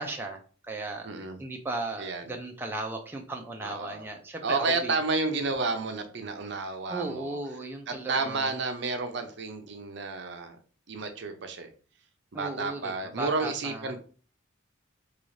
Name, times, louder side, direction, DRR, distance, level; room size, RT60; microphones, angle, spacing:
voice 1, 0.0-1.1 1.4-4.9 6.9-8.5 12.3-14.0, right 2 dB, 10° right, 1 dB, 0.4 m, -36 dB
voice 2, 1.0-1.4 2.0-2.2 3.6-4.1 4.4-7.4 7.9-10.6 10.9-11.7 12.3-14.0, right 3 dB, 65° right, 6 dB, 0.6 m, -31 dB
3.9 x 2.4 x 3.1 m, 0.39 s
head